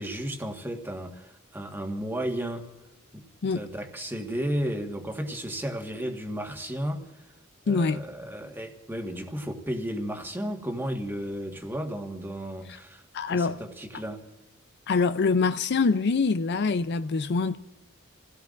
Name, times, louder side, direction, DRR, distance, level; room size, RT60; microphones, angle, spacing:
voice 1, 0.0-2.7 3.1-3.2 3.5-7.3 7.6-14.3, equal, 10° right, 1.5 m, -33 dB
voice 2, 7.7-8.0 13.1-13.6 14.9-17.6, left 4 dB, 55° left, 0.5 m, -24 dB
29.0 x 17.0 x 2.5 m
head